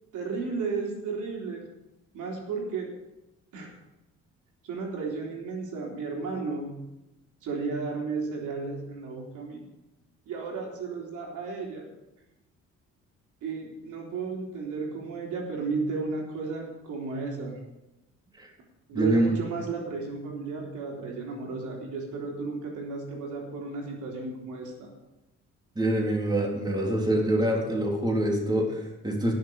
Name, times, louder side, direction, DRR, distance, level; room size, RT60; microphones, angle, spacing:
voice 1, 0.1-1.7 2.1-3.0 3.5-3.7 4.6-6.7 7.4-9.7 10.3-11.9 13.4-17.6 18.9-24.9, right 4 dB, 80° right, -1 dB, 3.6 m, -33 dB
voice 2, 18.9-19.4 25.8-29.3, right 1 dB, 15° right, -1 dB, 3.5 m, -25 dB
19.5 x 6.7 x 5.1 m, 0.97 s
cardioid pair, 90°, 30 cm